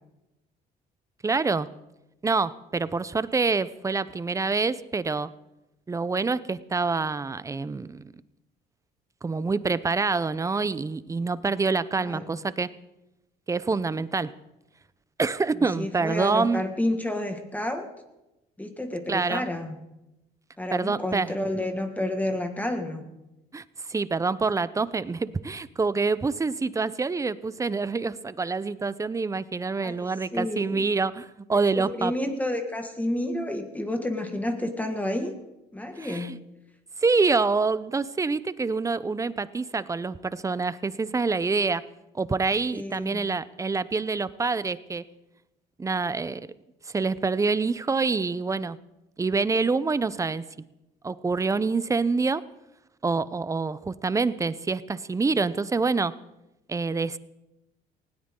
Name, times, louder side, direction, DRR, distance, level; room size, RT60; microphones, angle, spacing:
voice 1, 1.2-1.7 2.2-5.3 5.9-8.0 9.2-12.7 13.5-14.3 15.2-16.6 19.1-19.5 20.7-21.3 23.5-23.6 23.9-32.1 36.0-36.4 37.0-41.8 42.1-45.1 45.8-46.4 46.9-48.8 49.2-50.4 51.0-52.4 53.0-56.2 56.7-57.2, right 4 dB, 20° right, 16 dB, 0.6 m, -26 dB
voice 2, 12.0-12.4 15.6-17.9 18.6-19.8 20.6-23.1 29.8-29.9 30.3-30.9 31.6-35.4 35.7-36.3 42.7-43.3, left 1 dB, 10° left, 5 dB, 1.8 m, -30 dB
19.5 x 17.5 x 3.8 m, 0.95 s
cardioid pair, 110°, 17 cm